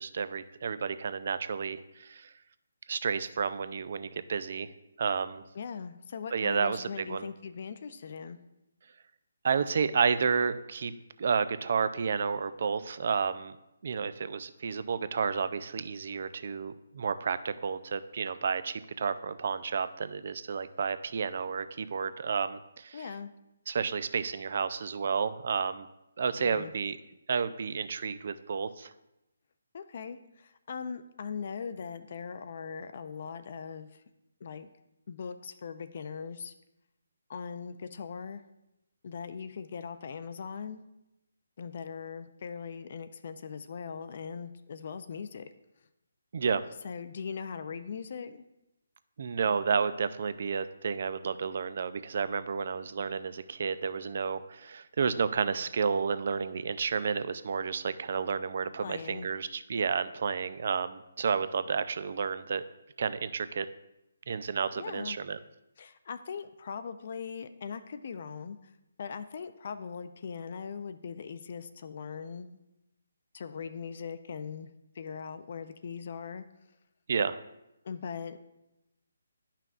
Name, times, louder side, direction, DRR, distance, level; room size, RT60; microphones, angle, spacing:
voice 1, 0.0-2.3 2.9-4.7 5.0-5.4 6.3-7.3 9.4-10.9 11.2-13.6 13.8-23.1 23.7-25.9 26.2-27.0 27.3-28.9 46.3-46.6 49.2-62.6 63.0-63.7 64.3-65.4 77.1-77.4, right 6 dB, 50° right, 13 dB, 0.4 m, -31 dB
voice 2, 5.6-8.4 22.9-23.3 26.4-26.7 29.7-34.0 34.4-34.7 35.1-36.5 37.3-38.4 39.0-40.8 41.6-45.5 46.8-48.4 58.8-59.3 64.8-65.2 65.8-68.6 69.0-72.6 73.3-74.7 75.0-76.4 77.8-78.4, left 6 dB, 45° left, 11 dB, 0.4 m, -40 dB
10.5 x 5.7 x 2.4 m, 0.90 s
hypercardioid pair, 160°, 0 cm